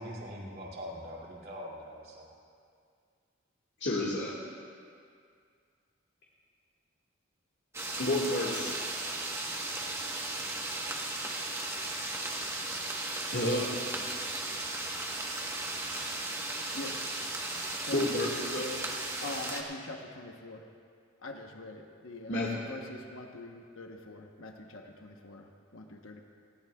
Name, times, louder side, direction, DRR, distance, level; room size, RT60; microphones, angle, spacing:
voice 1, 0.0-2.3, equal, 50° right, -4 dB, 2.4 m, -42 dB
voice 2, 3.8-4.3 8.0-8.8 13.3-13.8 17.9-18.8 22.3-22.5, left 1 dB, 60° left, -4 dB, 1.7 m, -30 dB
sound 1, 7.7-19.6, right 2 dB, 15° right, 1.1 m, -36 dB
voice 3, 17.8-18.4 19.2-20.7 21.2-26.2, left 2 dB, 85° left, 3 dB, 1.0 m, -44 dB
19.5 x 17.0 x 2.3 m, 2.2 s
head